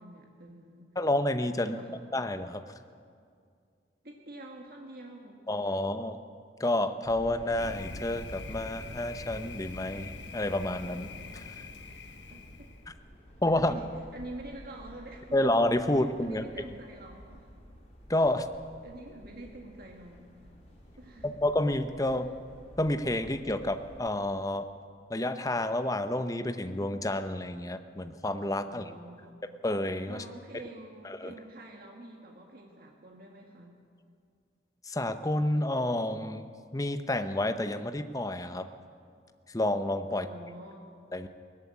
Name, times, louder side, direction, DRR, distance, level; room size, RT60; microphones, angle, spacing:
voice 1, 0.0-0.9 1.6-2.0 4.0-5.4 12.3-12.7 13.6-15.4 16.0-17.5 18.8-20.3 21.0-21.4 28.6-29.4 30.1-33.8 40.1-41.0, right 1 dB, 55° right, 0 dB, 1.8 m, -47 dB
voice 2, 1.0-1.8 2.1-2.6 5.5-6.2 6.6-11.5 13.4-13.8 15.3-16.4 18.1-18.5 21.2-22.3 22.8-24.7 25.1-28.8 29.6-30.2 31.0-31.3 34.8-36.5 36.7-38.7 39.5-40.3 41.1-41.3, left 1 dB, 20° left, 9 dB, 0.8 m, -29 dB
sound 1, 7.0-24.1, equal, 40° left, 4.0 m, -50 dB
Thunder, 7.6-12.9, left 4 dB, 75° left, 1.2 m, -44 dB
19.0 x 14.5 x 9.6 m, 2.2 s
head